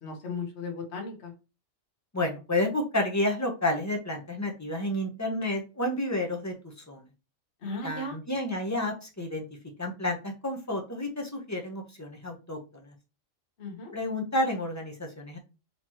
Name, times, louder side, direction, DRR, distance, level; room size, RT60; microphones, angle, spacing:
voice 1, 0.0-1.3 7.6-8.1 13.6-13.9, left 3 dB, 55° left, 1 dB, 1.4 m, -36 dB
voice 2, 2.1-6.5 6.9-7.0 7.8-9.4 9.8-12.9 13.9-15.4, left 1 dB, 15° left, 1 dB, 0.7 m, -30 dB
4.3 x 3.0 x 2.9 m, 0.29 s
omnidirectional pair, 1.4 m